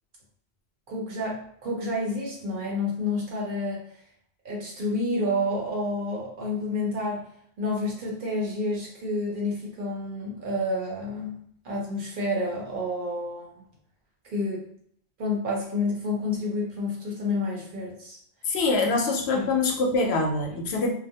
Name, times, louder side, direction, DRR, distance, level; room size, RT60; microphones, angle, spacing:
voice 1, 0.9-3.8 4.4-7.3 7.6-13.5 14.3-14.7 15.2-18.2 19.3-19.5, left 2 dB, 55° right, -3 dB, 0.8 m, -29 dB
voice 2, 18.4-20.9, left 3 dB, 75° left, 1 dB, 0.8 m, -24 dB
2.3 x 2.0 x 2.7 m, 0.65 s
omnidirectional pair, 1.1 m